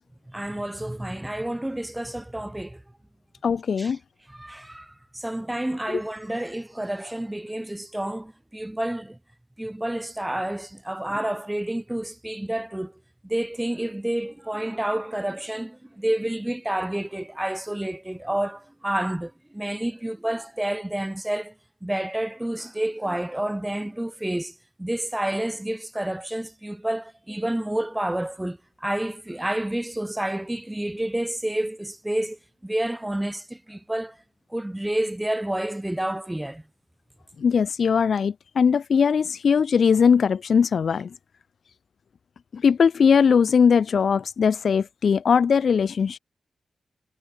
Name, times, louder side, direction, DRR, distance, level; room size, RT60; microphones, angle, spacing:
voice 1, 0.3-2.8 3.8-4.0 4.3-9.2 9.6-12.9 13.2-21.5 21.8-34.2 34.5-36.6, right 1 dB, 10° right, 2.6 m, -29 dB
voice 2, 3.4-4.0 5.9-6.0 37.4-41.1 42.5-46.2, left 6 dB, 65° left, 0.6 m, -20 dB
wide cardioid pair, 115°, 0 cm